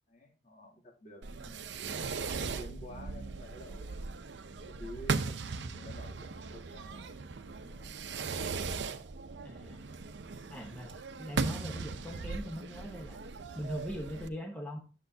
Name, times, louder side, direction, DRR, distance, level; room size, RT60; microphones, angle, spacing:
voice 1, 0.1-1.9 2.3-4.0 4.6-8.3, equal, 45° left, -3 dB, 2.7 m, -51 dB
Fireworks, 1.2-14.3, right 4 dB, 65° right, 0.6 m, -38 dB
voice 2, 9.4-9.9 10.4-13.2 13.5-14.8, equal, 10° left, 1 dB, 0.8 m, -41 dB
10.0 x 7.3 x 2.7 m, 0.35 s
head